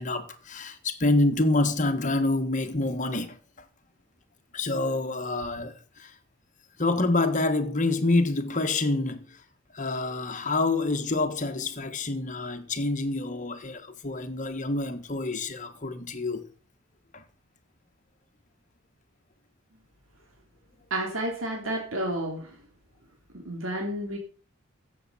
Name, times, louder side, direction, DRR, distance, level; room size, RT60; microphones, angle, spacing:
voice 1, 0.0-3.4 4.5-6.2 6.8-9.4 9.7-16.5 17.1-17.2, left 2 dB, 40° left, 1.5 m, -27 dB
voice 2, 20.9-22.5 23.4-24.2, right 1 dB, 80° right, 3.1 m, -30 dB
15.0 x 7.4 x 5.7 m
head